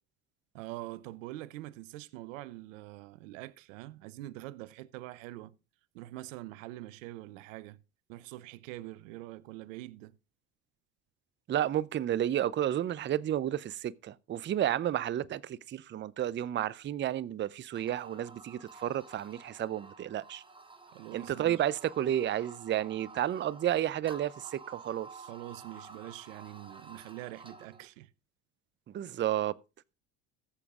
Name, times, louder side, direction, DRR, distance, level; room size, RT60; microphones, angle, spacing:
voice 1, 0.5-5.5 5.9-7.8 8.1-10.1 20.9-21.6 25.2-28.1, right 17 dB, 85° right, 0.7 m, -44 dB
voice 2, 11.5-20.4 21.1-25.1 28.9-29.5, right 11 dB, 30° right, 0.5 m, -31 dB
sound 1, 17.7-27.9, right 3 dB, 15° right, 1.5 m, -51 dB
14.5 x 7.1 x 3.6 m
supercardioid pair, 85°, 38 cm